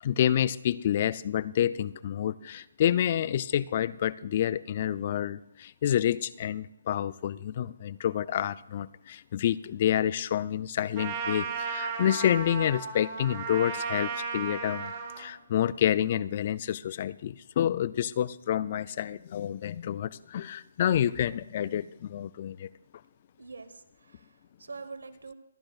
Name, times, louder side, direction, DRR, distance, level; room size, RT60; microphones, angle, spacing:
voice 1, 0.0-22.7, left 10 dB, 35° left, 20 dB, 0.3 m, -28 dB
Trumpet, 11.0-15.3, right 5 dB, 25° right, 1.5 m, -35 dB
voice 2, 23.4-25.3, right 4 dB, 85° right, 11 dB, 1.1 m, -45 dB
25.0 x 10.0 x 2.4 m, 0.85 s
hypercardioid pair, 165°, 0 cm